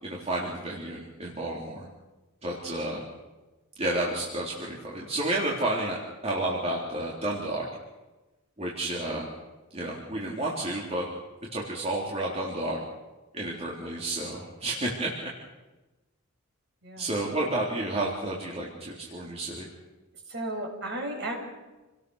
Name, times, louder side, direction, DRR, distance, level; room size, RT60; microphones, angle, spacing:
voice 1, 0.0-1.9 2.4-3.0 3.8-6.0 6.2-7.6 8.6-9.3 9.7-11.1 11.5-12.8 13.3-15.3 17.0-19.7, right 1 dB, 30° right, -4 dB, 3.6 m, -31 dB
voice 2, 20.3-21.4, right 1 dB, 50° right, 2 dB, 6.1 m, -34 dB
29.0 x 18.5 x 6.6 m, 1.1 s
head